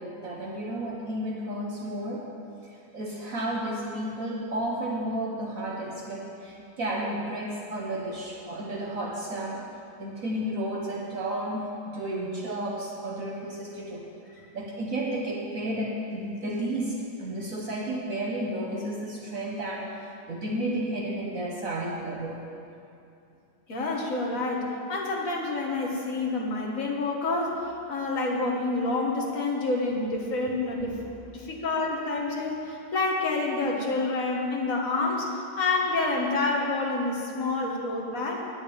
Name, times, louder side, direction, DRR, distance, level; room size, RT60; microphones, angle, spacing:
voice 1, 0.0-2.3 2.6-9.7 10.0-14.0 14.5-22.4 30.8-30.9, right 1 dB, 55° right, -2 dB, 1.4 m, -32 dB
voice 2, 23.7-31.0 31.3-38.4, left 3 dB, 50° left, -1 dB, 1.8 m, -28 dB
9.4 x 6.6 x 8.8 m, 2.6 s
omnidirectional pair, 1.8 m